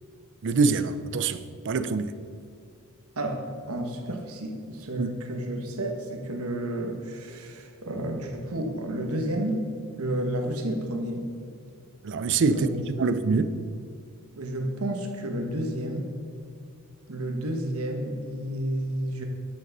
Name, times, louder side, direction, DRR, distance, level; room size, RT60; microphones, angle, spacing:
voice 1, 0.4-1.4 1.6-2.1 5.0-5.1 12.0-13.6, right 4 dB, 55° right, 0.5 m, -25 dB
voice 2, 3.2-9.6 10.0-11.3 12.5-13.1 14.4-16.1 17.1-19.2, right 1 dB, 75° right, 1.3 m, -31 dB
9.5 x 6.6 x 5.4 m
head